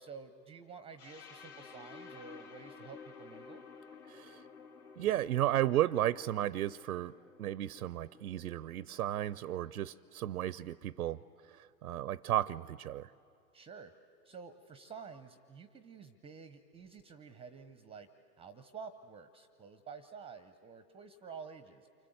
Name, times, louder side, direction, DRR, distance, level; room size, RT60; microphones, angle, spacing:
voice 1, 0.0-3.6 13.5-13.9 14.2-18.1 18.4-21.9, right 5 dB, 10° right, 11 dB, 0.7 m, -50 dB
sound 1, 1.0-8.8, left 5 dB, 65° left, 3.4 m, -53 dB
voice 2, 4.1-4.4 5.0-7.1 7.4-11.2 11.5-13.1, right 13 dB, 75° right, 20 dB, 0.6 m, -34 dB
29.0 x 25.0 x 8.0 m, 2.6 s
hypercardioid pair, 110°, 46 cm